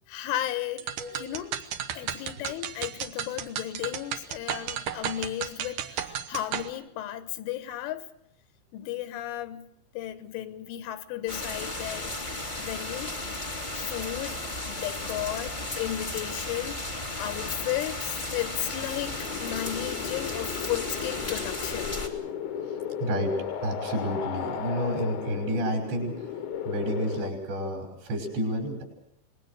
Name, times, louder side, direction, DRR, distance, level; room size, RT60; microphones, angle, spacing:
voice 1, 0.1-1.6 2.0-8.1 8.7-9.7 10.0-12.1 12.6-13.1 13.9-16.8 17.2-21.9, left 13 dB, 90° left, 3.7 m, -34 dB
sound 1, 0.8-6.7, right 9 dB, 90° right, 1.7 m, -34 dB
sound 2, 11.3-22.1, left 2 dB, 20° left, 1.3 m, -35 dB
sound 3, 18.5-27.3, left 8 dB, 70° left, 1.9 m, -35 dB
voice 2, 23.0-23.3 23.6-26.3 26.7-28.8, equal, 65° right, 7.6 m, -30 dB
25.5 x 21.0 x 6.6 m
omnidirectional pair, 5.4 m